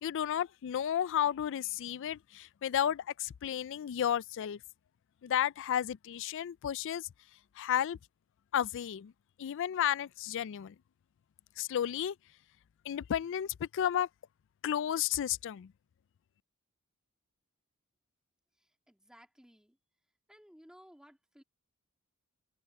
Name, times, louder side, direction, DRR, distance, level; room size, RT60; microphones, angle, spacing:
voice 1, 0.0-4.6 5.2-7.1 7.6-8.0 8.5-9.1 9.4-10.7 11.6-12.1 12.9-14.1 14.6-15.7, left 10 dB, 60° left, 0.3 m, -32 dB
voice 2, 18.9-19.8 20.3-21.4, equal, 5° right, 2.3 m, -58 dB
open air
head